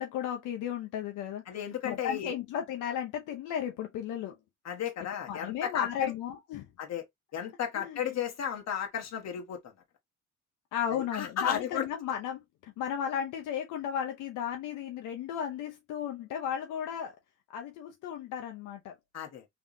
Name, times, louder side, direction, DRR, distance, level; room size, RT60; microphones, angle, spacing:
voice 1, 0.0-1.4 1.8-4.4 5.3-6.7 7.8-8.2 10.7-17.2 17.5-18.9, left 9 dB, 85° left, 0.7 m, -34 dB
voice 2, 1.5-2.3 4.6-6.1 6.8-7.0 7.3-9.7 10.9-11.8 19.1-19.4, left 9 dB, 60° left, 1.2 m, -34 dB
3.5 x 3.0 x 2.5 m
cardioid pair, 90°, 30 cm